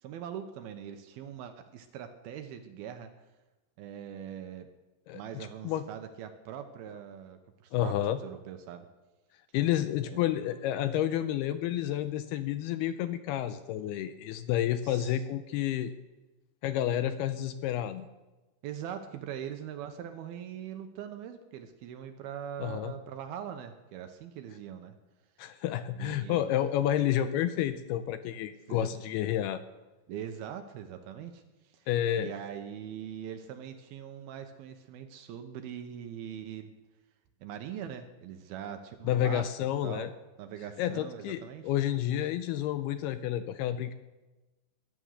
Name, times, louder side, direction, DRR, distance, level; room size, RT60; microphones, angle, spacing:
voice 1, 0.0-3.1 3.8-4.7 5.1-8.0 8.2-8.9 10.1-10.3 14.8-15.2 18.6-25.0 25.9-26.4 28.7-28.9 30.1-31.9 32.2-36.7 37.4-39.5 39.8-40.1 40.4-41.7, right 9 dB, 75° right, 7 dB, 2.6 m, -42 dB
voice 2, 5.1-5.9 7.7-8.2 9.5-15.9 16.6-18.1 22.6-22.9 25.4-29.6 31.9-32.3 39.0-40.1 40.8-43.9, left 11 dB, 80° left, 11 dB, 2.4 m, -30 dB
15.0 x 10.5 x 6.5 m, 1.1 s
omnidirectional pair, 4.9 m